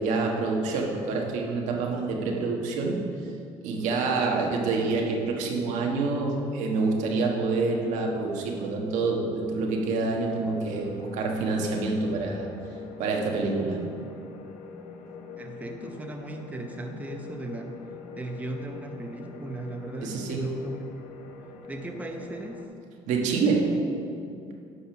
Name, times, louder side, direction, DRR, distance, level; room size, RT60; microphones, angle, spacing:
voice 1, 0.0-3.1 3.6-12.5 13.0-13.9 20.0-20.5 23.1-23.8, right 3 dB, 75° right, 1 dB, 1.3 m, -27 dB
sound 1, 10.2-22.7, left 6 dB, 85° left, 0.9 m, -44 dB
voice 2, 15.4-17.8 18.2-20.9 21.7-22.7, right 2 dB, 10° right, 3 dB, 0.8 m, -37 dB
11.0 x 4.3 x 5.7 m, 2.5 s
cardioid pair, 100°, 12 cm